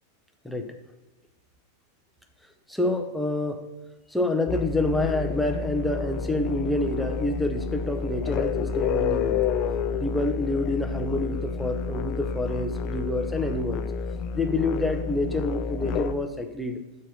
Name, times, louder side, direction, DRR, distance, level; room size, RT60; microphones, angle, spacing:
voice 1, 2.7-3.6 4.1-9.4 10.0-13.8 14.3-16.8, left 2 dB, 5° left, 4 dB, 0.7 m, -27 dB
sound 1, 4.5-16.1, left 5 dB, 40° left, 0.4 m, -29 dB
6.2 x 4.1 x 6.3 m, 1.0 s
figure-of-eight pair, 90°, 0 cm